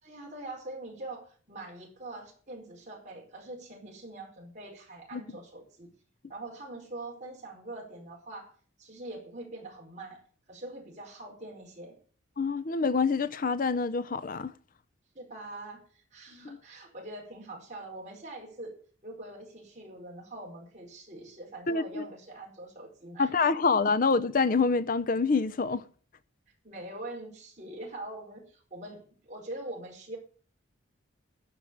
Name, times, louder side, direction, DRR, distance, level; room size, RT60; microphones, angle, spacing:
voice 1, 0.0-5.9 6.3-8.5 8.8-10.2 10.5-12.0 15.1-18.8 19.0-23.3 26.6-30.2, right 2 dB, 35° right, 4.9 m, -43 dB
voice 2, 12.4-14.5 16.4-16.6 21.7-22.0 23.2-25.9, left 4 dB, 45° left, 0.5 m, -26 dB
12.0 x 5.2 x 8.6 m
head